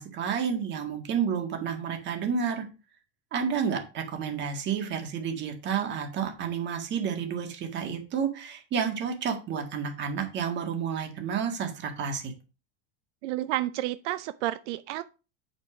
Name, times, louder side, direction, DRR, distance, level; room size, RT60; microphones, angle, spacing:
voice 1, 0.0-2.7 3.3-12.3, right 7 dB, 30° right, 1.8 m, -30 dB
voice 2, 13.2-15.0, right 15 dB, 85° right, 0.7 m, -30 dB
8.3 x 5.5 x 4.9 m
cardioid pair, 165°, 35 cm